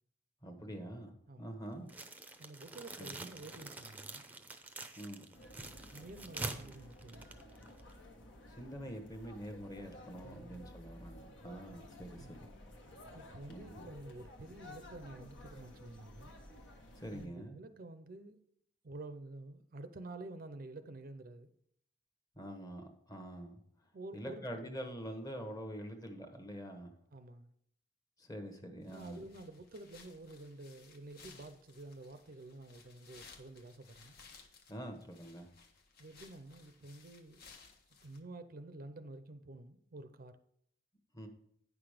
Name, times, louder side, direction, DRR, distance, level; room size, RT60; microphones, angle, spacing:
voice 1, 0.4-1.1 1.4-1.9 3.0-3.3 5.0-5.2 8.5-12.5 13.5-13.9 16.9-17.6 22.3-23.6 24.1-26.9 28.2-29.2 34.7-35.5 41.1-41.3, equal, 20° left, 1.1 m, -45 dB
voice 2, 1.3-1.6 2.4-4.3 5.9-7.3 10.2-10.7 12.2-12.5 13.1-16.4 17.1-18.4 18.8-21.5 23.9-24.9 27.1-27.5 28.9-34.2 36.0-37.4 38.0-40.3, right 2 dB, 50° right, 0.6 m, -50 dB
sound 1, 1.9-8.0, right 2 dB, 10° right, 0.6 m, -46 dB
sound 2, 5.3-17.3, left 1 dB, 70° left, 1.4 m, -54 dB
sound 3, 28.8-38.2, left 5 dB, 55° left, 1.1 m, -60 dB
9.3 x 5.9 x 4.9 m
head